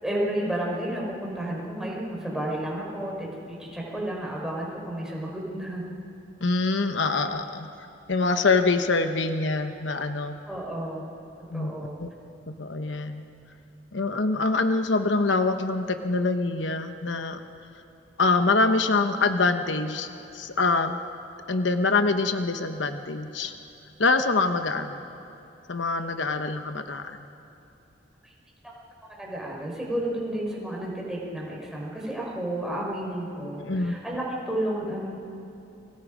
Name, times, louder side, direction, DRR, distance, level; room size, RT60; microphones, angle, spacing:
voice 1, 0.0-5.8 10.5-11.1 11.5-12.0 28.2-28.3 28.6-28.7 29.1-35.2, right 1 dB, 5° right, -4 dB, 4.7 m, -31 dB
voice 2, 6.4-7.7 8.1-10.4 11.5-11.7 12.0-12.1 12.5-13.2 13.9-17.4 18.2-21.0 21.5-23.5 24.0-25.0 25.7-27.2 33.6-33.9, left 3 dB, 90° left, 7 dB, 1.1 m, -25 dB
30.0 x 23.5 x 5.1 m, 2.8 s
head